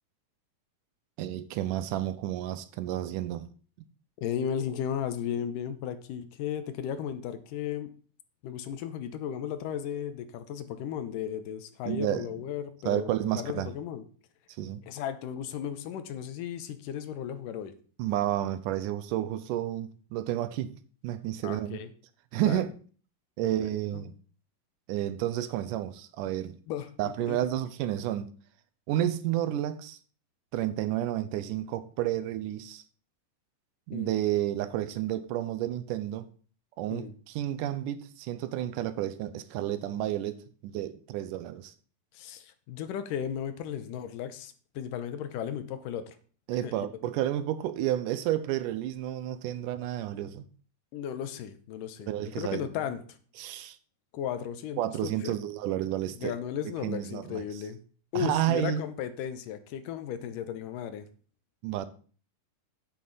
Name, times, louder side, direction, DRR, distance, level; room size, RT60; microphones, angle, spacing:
voice 1, 1.2-3.5 11.9-12.3 12.9-13.7 14.6-14.8 18.0-20.7 21.0-21.8 22.3-22.7 23.4-24.1 24.9-26.6 27.0-28.3 28.9-30.0 30.5-32.8 33.9-36.3 36.8-41.7 46.5-50.5 52.1-52.7 53.4-53.8 54.8-56.4 56.8-57.4 58.2-58.8 61.6-61.9, right 12 dB, 80° right, 2.2 m, -31 dB
voice 2, 4.2-7.9 8.4-14.0 14.9-17.7 21.4-21.9 22.5-22.6 23.9-24.0 26.7-27.4 33.9-34.1 36.9-37.1 42.1-46.2 46.6-46.9 50.9-53.0 54.1-55.3 56.2-57.8 58.1-61.1, left 9 dB, 85° left, 2.4 m, -35 dB
9.2 x 8.7 x 4.0 m
omnidirectional pair, 3.8 m